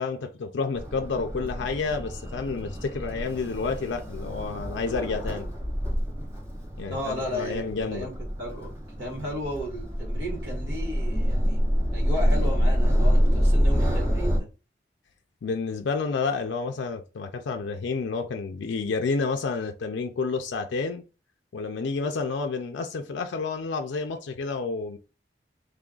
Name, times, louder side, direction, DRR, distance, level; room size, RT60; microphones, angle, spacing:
voice 1, 0.0-5.5 6.8-8.1 15.4-21.0 21.5-25.0, left 4 dB, 90° left, 0.4 m, -30 dB
sound 1, 0.8-14.4, equal, 15° right, 0.8 m, -26 dB
voice 2, 6.9-11.6 11.9-14.5, left 1 dB, 70° right, 1.6 m, -34 dB
3.3 x 2.3 x 3.7 m
head